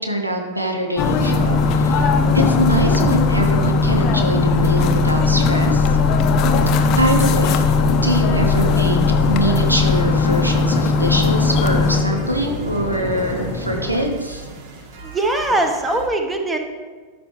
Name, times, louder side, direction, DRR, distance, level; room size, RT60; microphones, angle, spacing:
voice 1, 0.0-2.1 2.3-5.9 7.0-7.7 8.0-9.0 9.3-14.5, equal, 85° right, 3 dB, 0.8 m, -23 dB
sound 1, 1.0-12.0, left 4 dB, 35° left, 0.6 m, -18 dB
sound 2, 1.1-14.1, left 1 dB, 15° left, 0.9 m, -29 dB
sound 3, 1.2-16.1, right 4 dB, 45° right, 1.2 m, -42 dB
voice 2, 15.0-16.6, right 2 dB, 10° right, 5 dB, 0.9 m, -21 dB
13.5 x 5.1 x 3.2 m, 1.5 s
figure-of-eight pair, 90°, 0 cm